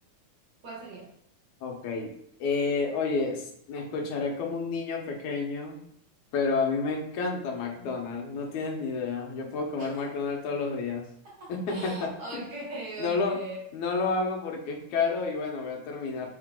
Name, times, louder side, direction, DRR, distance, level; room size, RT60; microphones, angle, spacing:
voice 1, 0.6-1.2 9.8-10.1 11.2-13.6, right 2 dB, 50° right, -4 dB, 2.1 m, -40 dB
voice 2, 1.6-2.1 2.4-5.8 6.3-11.1 11.5-12.4 13.0-13.4 13.7-16.3, left 4 dB, 85° left, 1 dB, 2.6 m, -30 dB
7.0 x 4.5 x 3.8 m, 0.71 s
omnidirectional pair, 3.3 m